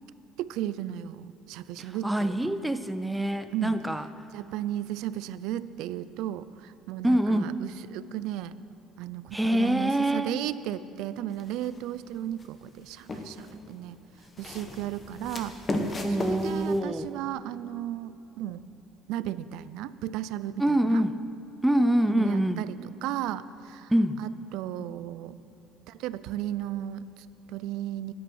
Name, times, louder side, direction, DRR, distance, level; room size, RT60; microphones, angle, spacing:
voice 1, 0.4-2.5 3.5-3.8 4.3-8.6 9.0-15.6 16.1-18.6 19.1-21.0 22.1-23.9 24.2-25.4 25.9-28.1, right 12 dB, 75° right, 15 dB, 0.4 m, -35 dB
voice 2, 2.0-4.0 7.0-7.6 9.3-10.3 16.0-17.1 20.6-21.1 21.6-22.6 23.9-24.2, right 1 dB, 5° right, 11 dB, 0.4 m, -25 dB
sound 1, 11.3-11.8 12.4-13.6 14.2-16.8, left 2 dB, 25° left, 1.0 m, -34 dB
12.5 x 8.6 x 6.1 m, 3.0 s
cardioid pair, 140°, 0 cm